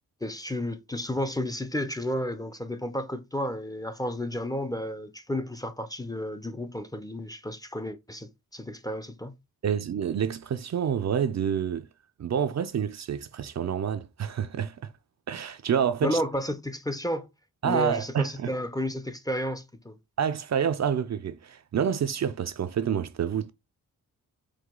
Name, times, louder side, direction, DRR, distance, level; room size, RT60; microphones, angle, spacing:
voice 1, 0.2-9.3 16.0-17.3 17.6-20.0, left 1 dB, 10° left, 0.5 m, -32 dB
voice 2, 9.6-11.9 12.2-14.9 15.3-16.2 17.6-18.5 20.2-23.5, right 8 dB, 50° right, 0.5 m, -28 dB
4.8 x 2.3 x 3.7 m
cardioid pair, 85°, 35 cm